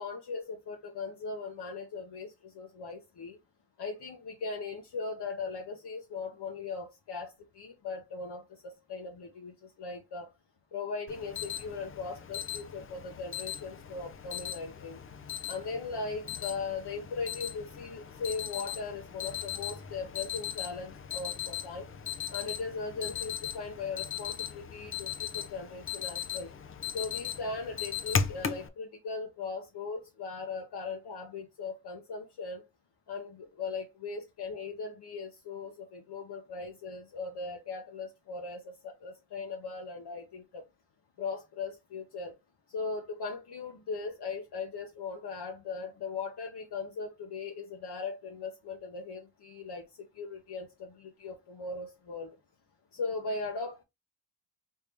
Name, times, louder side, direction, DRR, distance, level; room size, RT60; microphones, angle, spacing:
voice 1, 0.0-3.4 3.8-10.3 10.7-15.0 15.5-21.9 22.3-26.5 26.9-32.6 33.1-40.6 41.2-42.4 42.7-49.9 50.1-52.4 52.9-53.8, left 4 dB, 55° left, 0.9 m, -39 dB
Alarm, 11.1-28.7, left 8 dB, 30° left, 0.4 m, -38 dB
3.6 x 2.7 x 3.3 m
cardioid pair, 95°, 48 cm